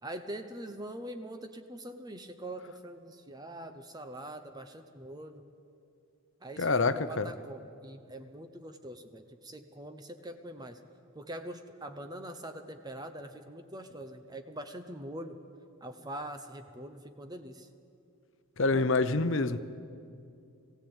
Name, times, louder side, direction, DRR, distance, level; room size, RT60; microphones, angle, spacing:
voice 1, 0.0-5.5 6.4-10.8 11.1-15.4 15.8-17.7, right 1 dB, 15° right, 0.8 m, -43 dB
voice 2, 6.6-7.3 18.6-19.6, left 3 dB, 55° left, 0.8 m, -26 dB
20.5 x 16.0 x 8.9 m
head